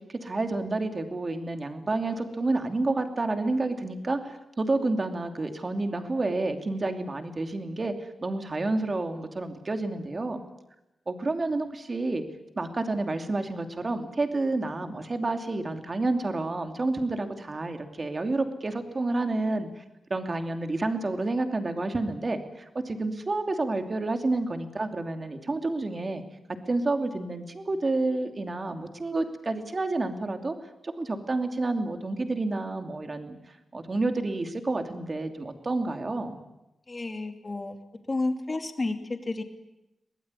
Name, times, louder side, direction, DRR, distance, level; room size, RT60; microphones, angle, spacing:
voice 1, 0.2-10.4 11.1-12.2 12.6-19.8 20.1-26.2 26.7-30.5 30.8-33.4 33.7-36.4, right 2 dB, 30° right, 6 dB, 2.8 m, -29 dB
voice 2, 36.9-37.8 38.1-39.4, left 2 dB, 25° left, 6 dB, 2.7 m, -31 dB
23.0 x 21.0 x 9.8 m, 0.91 s
wide cardioid pair, 145°, 0 cm